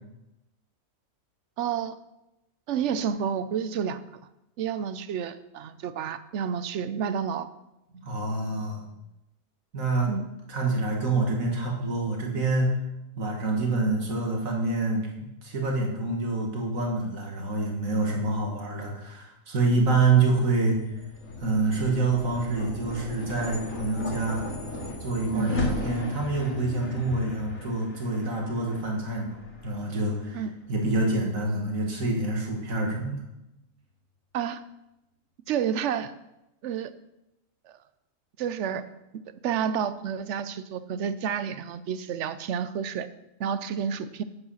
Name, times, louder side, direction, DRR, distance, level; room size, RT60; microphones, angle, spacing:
voice 1, 1.6-2.0 2.7-4.2 4.6-7.5 10.1-10.2 25.3-25.5 30.3-30.5 34.3-34.6 35.5-36.1 36.6-36.9 38.4-38.9 39.4-43.1 43.4-44.2, right 8 dB, 65° right, 13 dB, 0.9 m, -30 dB
voice 2, 8.0-8.8 9.7-10.1 10.5-12.7 13.2-15.1 15.4-20.8 21.4-24.4 25.0-29.4 29.6-30.4 30.7-33.2, right 3 dB, 85° right, 0 dB, 2.2 m, -26 dB
sound 1, 20.6-31.1, left 2 dB, 90° left, 2.6 m, -37 dB
8.7 x 7.8 x 5.7 m, 0.91 s
omnidirectional pair, 1.4 m